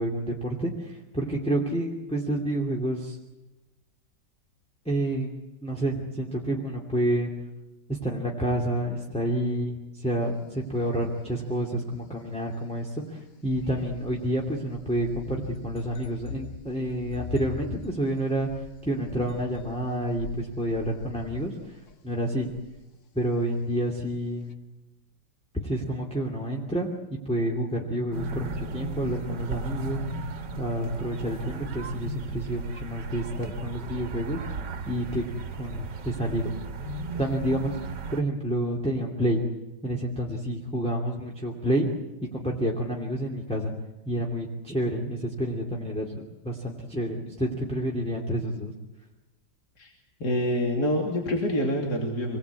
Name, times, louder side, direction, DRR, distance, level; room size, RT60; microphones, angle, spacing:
voice 1, 0.0-3.2 4.9-5.3 5.6-7.3 7.9-18.5 18.9-21.5 22.0-22.5 23.1-24.5 25.5-30.3 30.6-34.4 34.9-35.2 35.6-36.5 37.2-37.8 38.1-39.4 39.8-41.9 42.3-43.7 44.1-48.7, right 1 dB, 5° left, -1 dB, 2.7 m, -29 dB
sound 1, 13.4-22.8 24.5-24.6, left 5 dB, 50° left, 1.3 m, -42 dB
sound 2, 28.1-38.2, right 2 dB, 75° right, 2.0 m, -35 dB
voice 2, 50.2-52.4, left 1 dB, 65° left, 0 dB, 3.5 m, -26 dB
26.5 x 20.5 x 8.5 m, 1.1 s
omnidirectional pair, 1.9 m